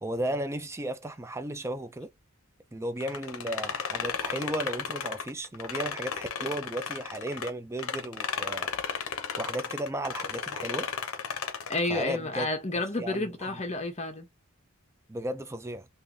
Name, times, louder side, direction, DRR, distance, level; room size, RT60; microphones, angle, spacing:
voice 1, 0.0-2.1 2.7-8.7 9.4-10.9 11.9-12.5 13.0-13.5 15.1-15.9, right 1 dB, 15° right, 0.5 m, -34 dB
sound 1, 3.0-7.5 7.8-11.9, left 6 dB, 70° left, 0.7 m, -34 dB
voice 2, 11.7-14.3, left 2 dB, 30° left, 1.0 m, -30 dB
3.7 x 2.6 x 2.7 m
head